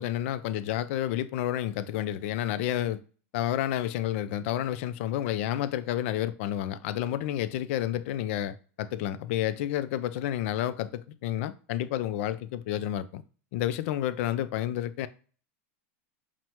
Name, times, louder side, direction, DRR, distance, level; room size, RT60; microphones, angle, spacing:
voice 1, 0.0-3.0 3.3-13.2 13.5-15.1, left 12 dB, 60° left, 0.4 m, -30 dB
6.0 x 2.1 x 2.9 m
supercardioid pair, 140°, 8 cm